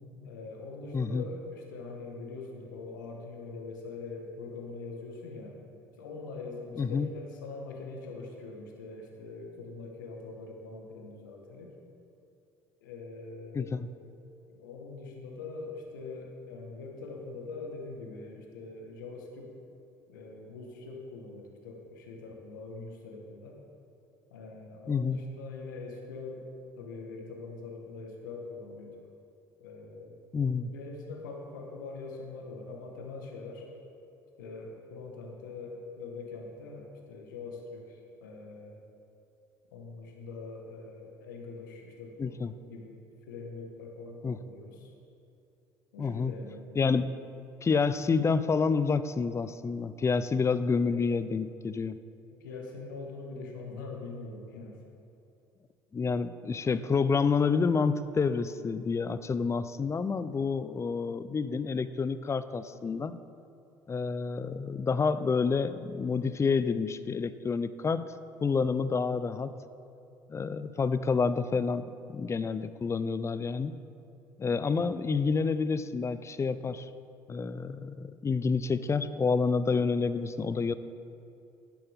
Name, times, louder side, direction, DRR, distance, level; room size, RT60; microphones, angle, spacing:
voice 1, 0.2-5.6 6.0-11.8 12.8-13.9 14.5-19.5 20.1-23.6 24.3-26.5 26.8-29.0 29.6-30.1 30.6-33.7 34.4-38.8 39.7-42.9 43.3-44.9 45.9-46.6 52.4-54.8 74.4-74.7, left 3 dB, 85° left, 1 dB, 1.5 m, -43 dB
voice 2, 0.9-1.2 6.8-7.1 13.5-13.9 24.9-25.2 30.3-30.7 42.2-42.5 44.2-44.4 46.0-46.3 46.8-47.1 47.6-52.0 55.9-63.2 63.9-68.1 68.4-69.5 70.3-71.9 72.1-73.8 74.4-76.9 77.3-80.7, left 5 dB, 30° left, 13 dB, 0.5 m, -28 dB
11.0 x 10.5 x 3.6 m, 2.6 s
hypercardioid pair, 65°, 10 cm